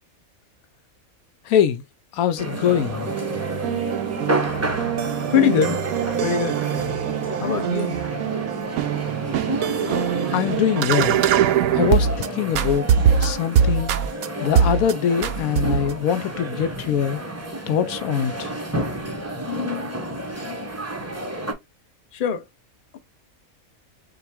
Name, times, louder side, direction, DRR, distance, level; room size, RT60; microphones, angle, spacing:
voice 1, 1.5-1.8 2.1-3.1 10.3-11.2 11.8-12.9 13.2-13.9 14.4-17.2 17.7-18.5, left 9 dB, 85° left, 1.0 m, -23 dB
sound 1, 2.4-21.5, right 1 dB, 20° right, 0.5 m, -30 dB
sound 2, 2.5-12.3 12.5-14.3 14.6-14.9 15.2-16.0, right 8 dB, 80° right, 1.0 m, -23 dB
voice 2, 5.3-5.8 6.2-6.6 7.4-8.0 22.1-22.4, left 8 dB, 45° left, 0.8 m, -22 dB
5.7 x 2.2 x 3.3 m
omnidirectional pair, 1.5 m